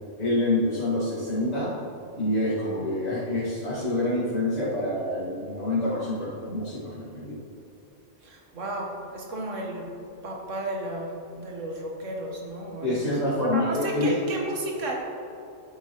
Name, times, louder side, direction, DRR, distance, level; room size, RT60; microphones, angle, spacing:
voice 1, 0.2-1.7 2.2-7.4 12.8-14.2, left 1 dB, 65° left, -11 dB, 2.3 m, -27 dB
voice 2, 8.2-9.9 10.2-13.1 13.4-14.9, right 1 dB, 85° right, 0 dB, 1.6 m, -33 dB
11.5 x 8.2 x 3.0 m, 2.7 s
omnidirectional pair, 1.2 m